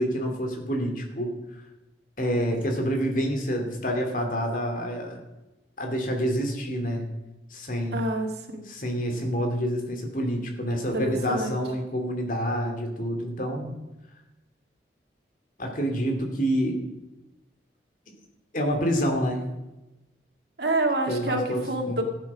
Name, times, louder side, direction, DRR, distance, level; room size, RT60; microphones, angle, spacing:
voice 1, 0.0-1.3 2.2-5.2 5.8-7.0 7.5-8.0 8.7-13.7 15.6-16.8 18.5-19.4 21.1-22.0, equal, 45° left, 3 dB, 2.6 m, -27 dB
voice 2, 7.9-8.7 10.9-11.6 20.6-22.0, right 2 dB, 65° right, 3 dB, 2.1 m, -27 dB
15.0 x 9.1 x 6.2 m, 1.0 s
head